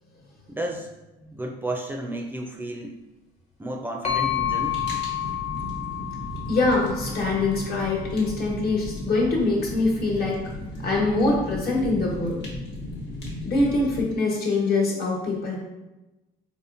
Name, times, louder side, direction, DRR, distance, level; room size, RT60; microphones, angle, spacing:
voice 1, 0.5-0.9 1.3-3.0 3.6-4.8 5.3-5.4, right 1 dB, 10° right, 1 dB, 0.4 m, -32 dB
sound 1, 4.0-7.8, left 11 dB, 40° left, 0.8 m, -30 dB
Fire, 4.2-14.0, left 1 dB, 80° left, 1.2 m, -35 dB
voice 2, 6.5-10.4 10.8-12.4 13.4-15.6, left 2 dB, 65° left, -2 dB, 1.2 m, -24 dB
4.2 x 3.0 x 2.5 m, 1.0 s
cardioid pair, 110°, 17 cm